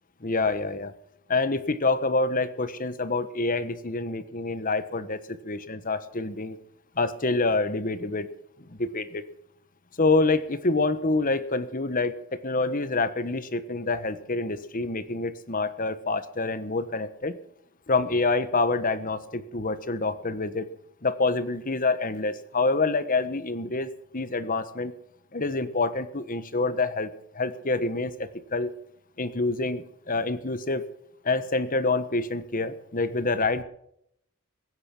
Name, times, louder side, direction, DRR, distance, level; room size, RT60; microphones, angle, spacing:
voice 1, 0.2-0.9 1.3-6.6 7.0-8.3 8.6-9.2 10.0-17.4 17.9-20.7 21.0-24.9 25.3-28.7 29.2-30.9 31.2-33.6, left 3 dB, 40° left, 12 dB, 1.3 m, -27 dB
22.5 x 9.7 x 6.1 m, 0.73 s
head